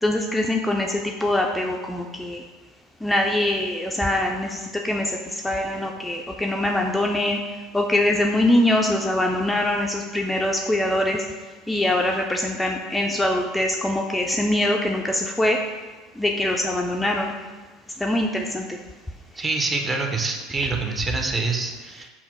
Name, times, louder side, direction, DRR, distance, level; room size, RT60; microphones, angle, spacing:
voice 1, 0.0-2.4 3.0-7.4 7.7-11.2 11.7-15.6 16.2-17.3 18.0-18.8, left 1 dB, 10° left, 1 dB, 0.4 m, -23 dB
voice 2, 19.4-22.1, right 3 dB, 25° right, 3 dB, 0.7 m, -26 dB
5.7 x 2.1 x 4.4 m, 1.3 s
hypercardioid pair, 85°, 0 cm